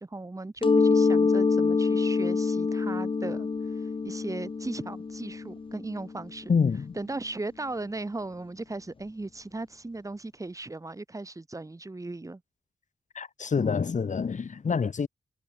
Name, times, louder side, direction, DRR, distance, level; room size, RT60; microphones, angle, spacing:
voice 1, 0.0-3.5 4.0-6.5 7.0-12.4, right 2 dB, 20° right, 2.1 m, -37 dB
Mallet percussion, 0.6-6.2, left 4 dB, 35° left, 1.0 m, -26 dB
voice 2, 6.5-6.9 13.1-15.1, left 5 dB, 50° left, 2.9 m, -27 dB
cardioid pair, 70°, 16 cm